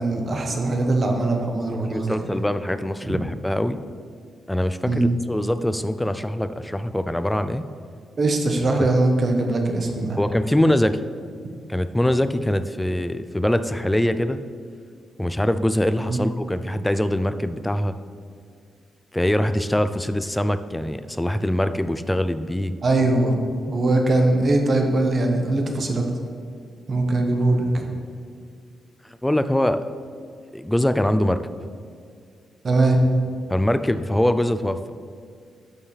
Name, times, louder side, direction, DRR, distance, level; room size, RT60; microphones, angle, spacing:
voice 1, 0.0-2.2 3.1-3.2 4.9-5.1 8.2-10.2 16.1-16.2 22.8-26.0 26.9-27.8 32.6-33.0, right 2 dB, 35° right, 3 dB, 1.1 m, -21 dB
voice 2, 1.7-3.8 4.5-7.7 8.8-8.9 10.2-11.0 11.7-14.4 15.2-18.0 19.1-22.7 29.2-29.9 30.5-31.4 33.5-34.8, left 1 dB, 5° left, 11 dB, 0.3 m, -23 dB
11.0 x 7.1 x 3.3 m, 2.2 s
wide cardioid pair, 150°, 0 cm